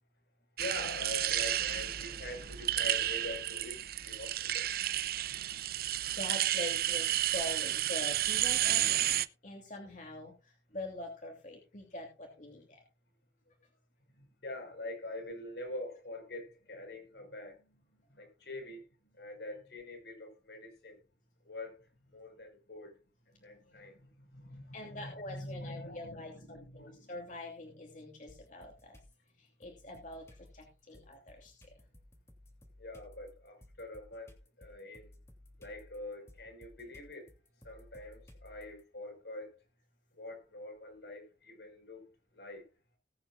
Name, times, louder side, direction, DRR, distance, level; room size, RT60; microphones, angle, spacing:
voice 1, 0.6-4.7 14.1-21.0 21.4-23.0 23.3-27.1 32.8-35.1 35.6-37.3 37.6-39.5 40.1-42.7, left 1 dB, 70° left, 5.1 m, -45 dB
sound 1, 0.6-9.3, right 13 dB, 55° right, 0.6 m, -32 dB
voice 2, 6.1-9.0 9.4-12.8 24.7-29.0 29.4-31.7, left 2 dB, 45° left, 3.0 m, -44 dB
sound 2, 28.3-29.1 29.6-38.8, left 1 dB, 15° left, 2.9 m, -58 dB
19.5 x 8.9 x 2.5 m
head